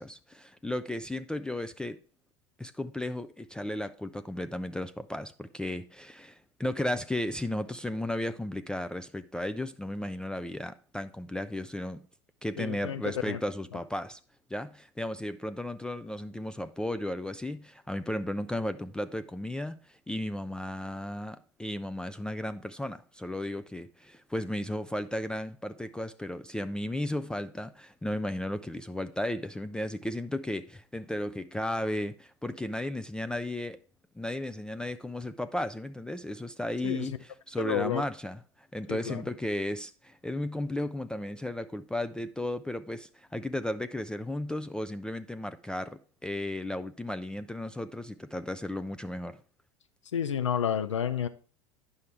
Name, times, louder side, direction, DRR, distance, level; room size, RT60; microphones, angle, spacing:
voice 1, 0.0-2.0 2.6-12.0 12.4-14.2 14.5-33.8 34.2-49.4, left 1 dB, 5° left, 0.3 m, -34 dB
voice 2, 12.6-13.4 36.8-37.1 37.6-38.0 38.9-39.2 50.1-51.3, left 8 dB, 80° left, 0.5 m, -30 dB
9.5 x 5.6 x 3.3 m
figure-of-eight pair, 80°, 15 cm